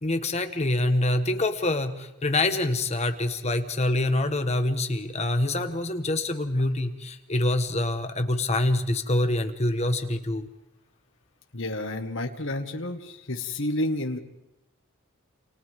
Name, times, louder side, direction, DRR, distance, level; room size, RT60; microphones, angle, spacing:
voice 1, 0.0-10.5, left 2 dB, 30° left, 7 dB, 1.4 m, -25 dB
voice 2, 11.5-14.2, left 1 dB, 60° left, 4 dB, 1.8 m, -30 dB
28.5 x 28.5 x 3.7 m, 0.93 s
head